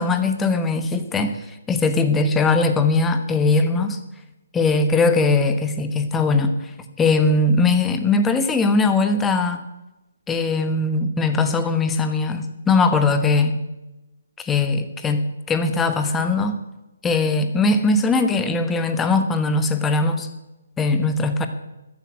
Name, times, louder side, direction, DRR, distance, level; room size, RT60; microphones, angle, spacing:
voice 1, 0.0-4.0 4.5-6.7 7.0-9.6 10.3-13.6 14.4-16.6 17.0-20.3 20.8-21.5, left 3 dB, 10° left, 8 dB, 1.2 m, -20 dB
13.5 x 10.5 x 8.2 m, 0.99 s
figure-of-eight pair, 140°, 0 cm